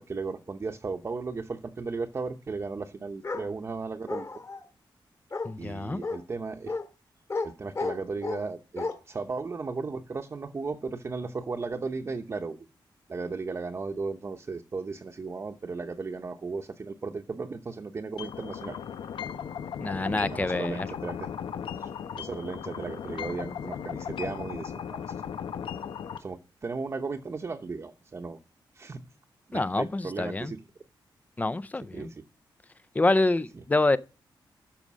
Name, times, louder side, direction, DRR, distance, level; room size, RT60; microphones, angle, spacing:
voice 1, 0.0-4.3 5.6-6.8 7.4-12.6 13.1-18.8 19.9-21.3 21.8-25.2 26.2-28.4 28.7-29.0 29.5-30.6 31.9-32.2, right 4 dB, 35° right, 0.9 m, -35 dB
Bark, 3.2-3.5 4.1-4.6 5.3-5.5 6.0-6.2 6.7-6.8 7.3-7.5 7.8-8.4 8.8-8.9, left 3 dB, 35° left, 1.9 m, -32 dB
voice 2, 5.4-6.0 19.8-20.9 29.5-30.5 31.4-32.1 32.9-34.0, left 2 dB, 20° left, 0.5 m, -26 dB
sound 1, 18.2-26.2, left 8 dB, 90° left, 0.9 m, -37 dB
12.5 x 5.1 x 6.2 m
wide cardioid pair, 145°, 8 cm